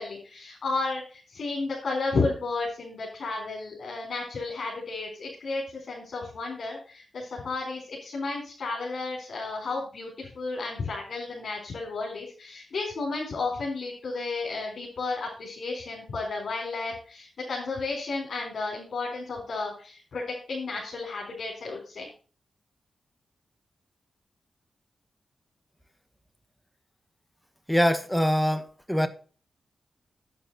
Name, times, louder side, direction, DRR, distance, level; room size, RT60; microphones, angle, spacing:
voice 1, 0.0-20.2 20.5-22.1, left 3 dB, 70° left, 4.1 m, -32 dB
voice 2, 27.7-29.1, equal, ahead, 1.3 m, -24 dB
9.0 x 8.8 x 4.2 m
cardioid pair, 70°, 0 cm